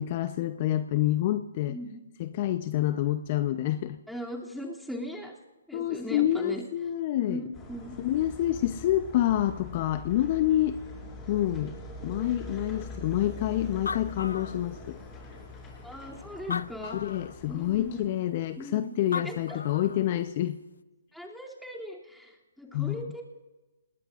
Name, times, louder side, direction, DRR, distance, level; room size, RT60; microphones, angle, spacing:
voice 1, 0.0-1.8 2.2-4.0 5.7-7.4 8.0-10.8 11.3-11.7 12.0-15.0 16.5-20.6 22.7-23.0, left 13 dB, 40° left, 10 dB, 0.8 m, -28 dB
voice 2, 1.7-2.0 4.1-5.3 5.7-6.6 7.3-8.0 15.8-17.0 17.5-18.1 18.6-19.6 21.1-23.2, equal, ahead, -3 dB, 2.8 m, -39 dB
sound 1, 7.5-18.1, left 2 dB, 20° left, 5.2 m, -43 dB
Animal, 13.4-13.5 13.7-15.1 15.8-15.9 16.4-17.4 18.8-18.9 19.1-20.1, left 5 dB, 80° left, 0.6 m, -36 dB
29.0 x 19.5 x 2.5 m, 1.1 s
hypercardioid pair, 140°, 0 cm